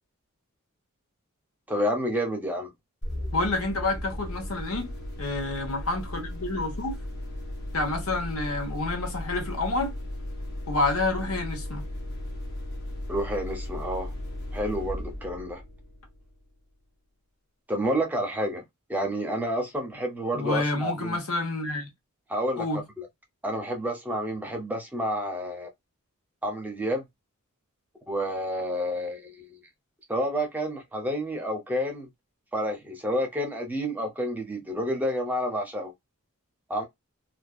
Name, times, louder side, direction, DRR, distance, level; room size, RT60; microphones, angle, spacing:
voice 1, 1.7-2.7 13.1-14.1 14.5-15.6 17.7-18.6 18.9-21.2 22.3-22.7 23.0-23.1 23.4-25.7 26.4-27.0 28.1-29.5 30.1-32.1 32.5-35.9 36.7-36.9, equal, 10° right, 0.5 m, -29 dB
sound 1, 3.0-16.5, left 1 dB, 50° left, 0.8 m, -36 dB
voice 2, 3.3-4.9 5.2-7.0 7.7-10.0 10.7-11.8 20.3-21.9 22.6-22.8, left 2 dB, 75° left, 1.0 m, -28 dB
2.5 x 2.3 x 2.3 m
head